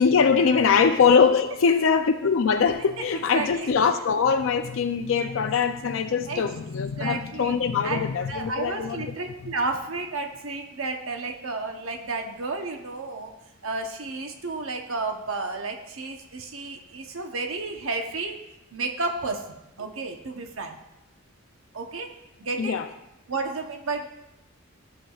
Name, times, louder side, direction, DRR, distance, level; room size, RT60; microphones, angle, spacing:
voice 1, 0.0-9.0 22.6-22.9, left 6 dB, 70° left, 0.4 m, -22 dB
voice 2, 3.3-3.7 6.3-6.4 7.0-7.6 7.8-8.0 8.3-13.3 13.6-18.4 18.7-20.8 21.7-22.1 22.4-22.8 23.3-24.1, right 3 dB, 80° right, 1.0 m, -32 dB
14.0 x 7.3 x 2.4 m
head